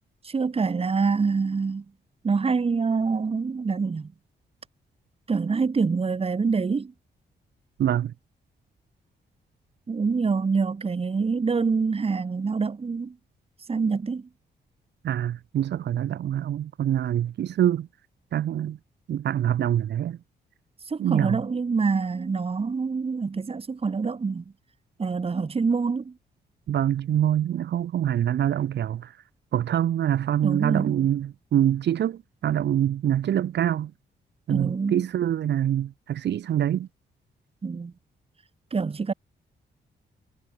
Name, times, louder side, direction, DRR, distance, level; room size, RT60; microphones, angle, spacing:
voice 1, 0.2-1.8 2.2-4.1 5.3-6.9 9.9-13.2 13.7-14.3 20.9-24.4 25.0-26.1 30.4-31.0 34.5-35.1 37.6-37.9 38.7-39.1, right 4 dB, 35° right, 2.1 m, -26 dB
voice 2, 7.8-8.1 15.0-17.9 18.3-18.8 19.1-20.2 21.0-21.4 26.7-29.1 29.5-33.9 34.5-36.9, right 10 dB, 75° right, 1.4 m, -25 dB
cardioid pair, 95°, 18 cm